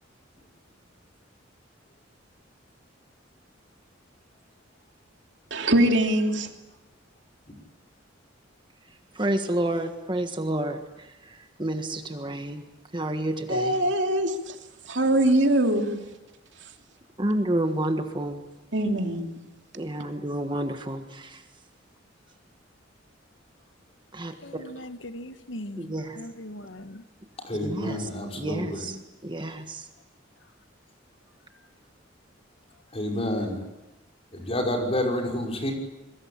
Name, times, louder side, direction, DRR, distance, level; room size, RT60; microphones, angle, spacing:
voice 1, 5.5-6.5 13.5-14.6 14.9-16.0 18.7-19.4, right 1 dB, 65° right, 3.0 m, -23 dB
voice 2, 9.1-12.6 12.9-13.8 17.2-18.4 19.7-21.4 24.1-24.6 25.7-26.2 27.6-28.1 28.4-29.9, right 1 dB, 25° right, 1.5 m, -30 dB
voice 3, 24.4-27.0 33.1-33.3, left 1 dB, 75° left, 1.4 m, -40 dB
voice 4, 27.4-28.8 32.9-33.6 34.3-35.7, left 1 dB, 30° left, 5.7 m, -29 dB
27.5 x 22.5 x 8.8 m
head